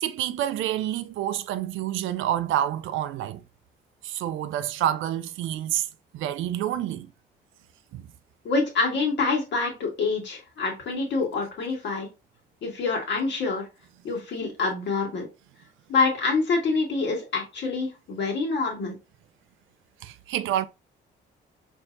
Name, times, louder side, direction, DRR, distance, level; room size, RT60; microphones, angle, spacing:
voice 1, 0.0-3.4 4.0-5.9 6.1-7.1 7.9-8.0 20.0-20.7, right 12 dB, 80° right, 0.4 m, -28 dB
voice 2, 8.4-12.1 12.6-13.6 14.0-15.2 15.9-18.9, left 4 dB, 65° left, 1.6 m, -26 dB
4.4 x 2.8 x 2.5 m
cardioid pair, 90°, 20 cm